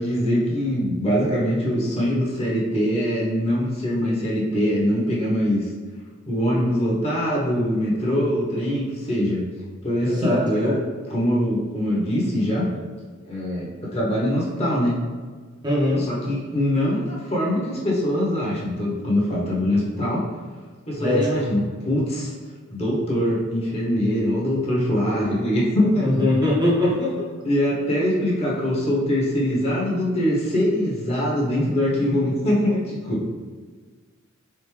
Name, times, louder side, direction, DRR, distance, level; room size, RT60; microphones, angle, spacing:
voice 1, 0.0-5.7 6.3-9.4 9.8-10.7 11.1-12.7 13.2-15.0 16.0-20.2 20.9-22.3 22.7-26.1 27.4-33.2, equal, 30° left, -5 dB, 1.0 m, -23 dB
voice 2, 10.0-10.8 15.6-16.0 21.0-21.3 26.0-27.3, left 1 dB, 20° right, -5 dB, 0.8 m, -22 dB
3.8 x 3.5 x 3.2 m, 1.5 s
head